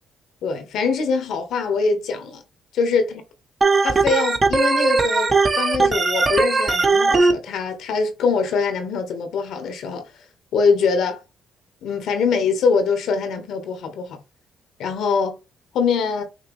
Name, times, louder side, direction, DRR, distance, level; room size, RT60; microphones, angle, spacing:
voice 1, 0.4-2.4 2.7-3.2 3.8-10.0 10.5-11.2 11.8-14.2 14.8-15.4 15.7-16.2, left 5 dB, 80° left, 1.2 m, -23 dB
Organ, 3.6-7.3, right 3 dB, 30° right, 0.8 m, -18 dB
5.8 x 2.9 x 3.1 m
cardioid pair, 90°, 0 cm